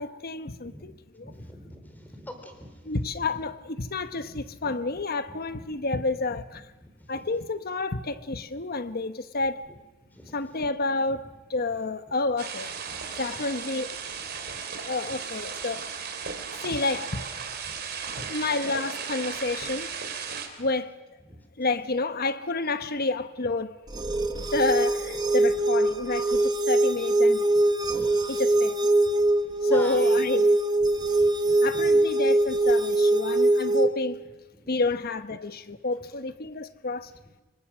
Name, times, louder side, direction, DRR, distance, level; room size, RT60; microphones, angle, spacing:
voice 1, 0.0-1.3 2.8-6.7 7.1-9.6 10.3-12.7 13.2-13.9 14.8-15.9 16.6-17.2 18.3-19.9 20.6-20.9 21.6-23.7 24.5-27.4 28.3-28.8 29.6-30.5 31.6-34.2 34.7-37.1, left 3 dB, 50° left, 1.1 m, -29 dB
voice 2, 1.2-3.0 4.6-4.7 5.8-5.9 6.8-7.2 10.1-10.3 14.5-14.6 18.2-18.3 20.6-20.7 21.3-21.4 24.3-24.6 27.8-28.2 29.7-30.2 30.9-31.9 34.6-34.7, left 1 dB, 10° left, 3.7 m, -44 dB
sound 1, 12.4-20.5, right 6 dB, 55° right, 3.4 m, -36 dB
sound 2, 23.9-33.9, right 2 dB, 20° right, 1.1 m, -22 dB
26.5 x 23.0 x 6.3 m
head